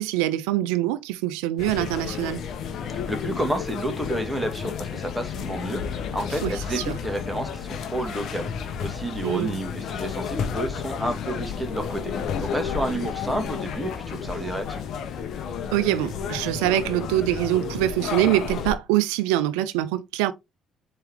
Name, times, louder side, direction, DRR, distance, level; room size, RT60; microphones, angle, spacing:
voice 1, 0.0-2.4 6.4-7.0 9.2-9.6 15.7-20.3, right 14 dB, 90° right, 0.3 m, -24 dB
sound 1, 1.6-18.8, left 7 dB, 65° left, 0.8 m, -32 dB
voice 2, 2.9-14.8, right 1 dB, 10° right, 1.8 m, -30 dB
4.4 x 3.3 x 3.5 m
supercardioid pair, 70°, 0 cm